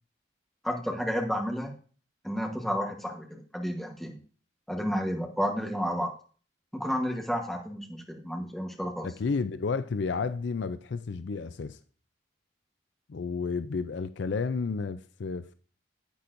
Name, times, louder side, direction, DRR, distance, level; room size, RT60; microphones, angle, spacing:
voice 1, 0.6-1.7 2.2-4.2 4.7-6.1 6.7-9.1, equal, ahead, 1.2 m, -31 dB
voice 2, 9.0-11.8 13.1-15.5, left 4 dB, 65° left, 0.4 m, -31 dB
10.0 x 8.5 x 2.6 m
head